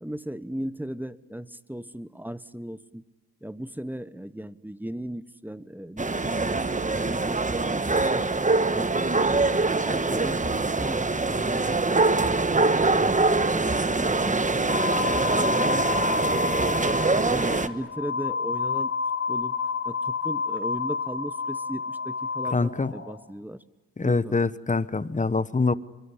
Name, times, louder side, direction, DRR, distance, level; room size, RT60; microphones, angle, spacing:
voice 1, 0.0-3.0 3.4-9.4 9.8-12.8 13.3-14.6 15.1-16.9 17.3-18.9 19.3-19.5 19.8-23.6 24.0-24.4, right 1 dB, 5° right, 16 dB, 1.1 m, -37 dB
sound 1, 6.0-17.7, right 3 dB, 20° right, 1.3 m, -24 dB
sound 2, 14.7-23.2, left 5 dB, 40° left, 4.4 m, -29 dB
voice 2, 22.5-22.9 24.0-25.7, left 3 dB, 20° left, 17 dB, 1.0 m, -24 dB
24.0 x 23.0 x 9.8 m, 1.2 s
cardioid pair, 55°, 33 cm